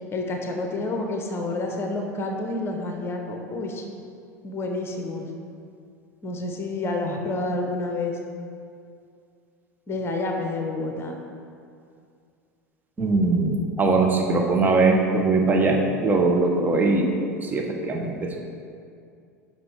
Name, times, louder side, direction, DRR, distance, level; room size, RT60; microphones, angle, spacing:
voice 1, 0.1-3.9 4.4-5.3 6.2-8.2 9.9-11.1, left 2 dB, 25° left, 2 dB, 1.3 m, -29 dB
voice 2, 13.0-18.4, right 3 dB, 20° right, 1 dB, 1.1 m, -21 dB
13.0 x 5.8 x 3.8 m, 2.4 s
figure-of-eight pair, 75°, 9 cm